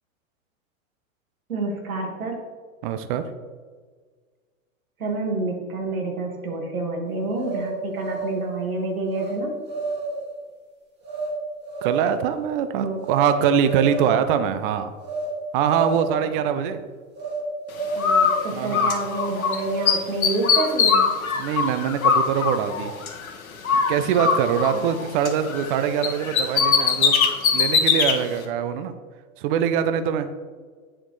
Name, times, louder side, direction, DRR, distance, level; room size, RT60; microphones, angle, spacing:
voice 1, 1.5-2.4 5.0-9.5 12.8-13.0 14.0-14.1 17.9-21.1 24.7-24.8, right 2 dB, 85° right, 2 dB, 1.9 m, -28 dB
voice 2, 2.8-3.2 11.8-14.9 15.5-16.8 18.5-18.9 21.4-22.9 23.9-27.2 27.5-28.9 29.4-30.3, right 8 dB, 40° right, 10 dB, 0.6 m, -23 dB
sound 1, 7.3-8.4 9.1-9.4 9.7-10.3 11.0-11.3 11.6-12.2 13.0-13.3 13.6-14.2 15.0-15.3 15.6-16.2 17.2-17.4 17.7-18.5 19.0-20.1, right 3 dB, 25° right, 2.0 m, -30 dB
Bird, 18.0-19.6 19.9-23.3 23.6-25.7 26.0-28.2, left 6 dB, 85° left, 1.3 m, -21 dB
8.6 x 6.2 x 3.1 m, 1.5 s
hypercardioid pair, 120°, 41 cm